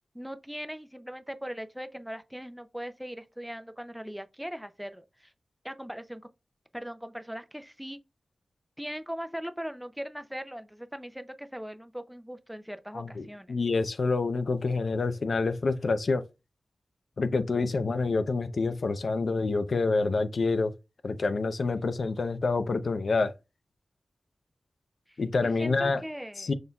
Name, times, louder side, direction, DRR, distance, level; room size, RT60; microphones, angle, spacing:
voice 1, 0.1-5.3 5.6-6.2 6.7-8.0 8.8-13.6 25.1-26.5, equal, 5° right, 0.4 m, -40 dB
voice 2, 12.9-16.2 17.2-20.7 21.0-23.3 25.2-26.0 26.4-26.5, left 3 dB, 65° left, 0.6 m, -27 dB
6.3 x 3.7 x 2.3 m
wide cardioid pair, 95°, 0 cm